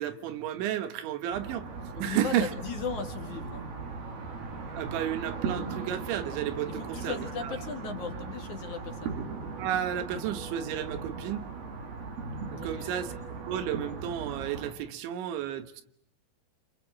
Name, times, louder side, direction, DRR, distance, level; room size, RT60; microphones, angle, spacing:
voice 1, 0.0-2.5 4.8-7.6 9.6-11.5 12.5-13.2 13.4-15.8, right 10 dB, 85° right, 11 dB, 3.7 m, -32 dB
sound 1, 1.3-14.7, right 4 dB, 60° right, 4.9 m, -38 dB
voice 2, 2.0-3.7 6.7-9.2 12.5-12.9, left 6 dB, 50° left, 5 dB, 2.9 m, -37 dB
29.0 x 27.5 x 7.5 m, 0.67 s
omnidirectional pair, 5.2 m